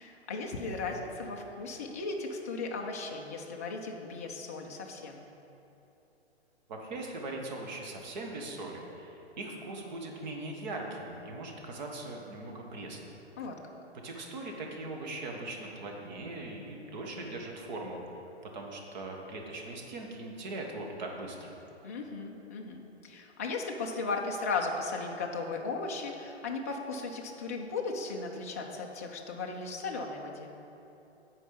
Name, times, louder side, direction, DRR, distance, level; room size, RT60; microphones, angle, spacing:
voice 1, 0.0-5.2 13.4-13.7 21.8-30.6, left 3 dB, 15° left, 1 dB, 0.3 m, -36 dB
voice 2, 6.7-13.0 14.0-18.0 18.5-21.6, right 2 dB, 40° right, 1 dB, 1.4 m, -40 dB
9.8 x 4.6 x 6.9 m, 3.0 s
figure-of-eight pair, 120°, 33 cm